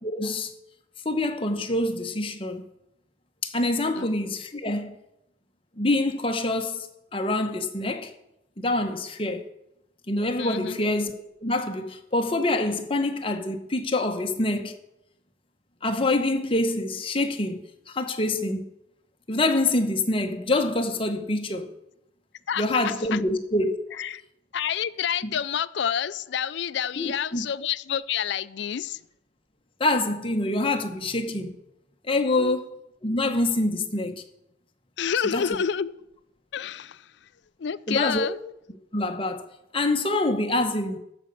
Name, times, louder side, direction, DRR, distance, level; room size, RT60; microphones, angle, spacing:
voice 1, 0.0-0.5 1.0-2.6 3.4-5.0 5.8-8.1 8.6-9.4 10.1-11.1 11.4-14.7 15.8-18.6 19.3-21.7 22.6-24.0 25.2-25.3 27.0-27.5 29.8-31.6 32.1-34.2 35.2-35.6 37.9-38.3 38.9-39.5 39.7-41.0, left 2 dB, 25° left, 1.0 m, -26 dB
voice 2, 10.4-10.8 22.5-23.2 24.0-24.2 24.5-29.0 32.4-32.6 35.0-35.9 36.5-37.0 37.6-38.4, left 8 dB, 60° left, 0.4 m, -28 dB
13.5 x 5.1 x 6.7 m
head